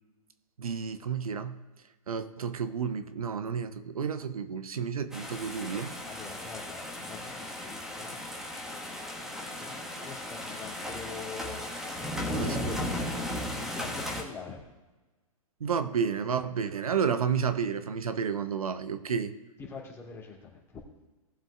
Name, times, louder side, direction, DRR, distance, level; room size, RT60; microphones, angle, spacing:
voice 1, 0.6-1.6 2.1-5.9 12.3-12.7 15.6-19.3, right 6 dB, 75° right, 11 dB, 0.8 m, -31 dB
sound 1, 5.1-14.2, left 1 dB, ahead, 1.6 m, -36 dB
voice 2, 6.0-8.3 8.6-11.7 12.2-13.1 13.5-14.6 19.6-20.8, left 4 dB, 15° left, -4 dB, 2.8 m, -44 dB
18.5 x 7.6 x 2.5 m, 1.2 s
figure-of-eight pair, 120°, 19 cm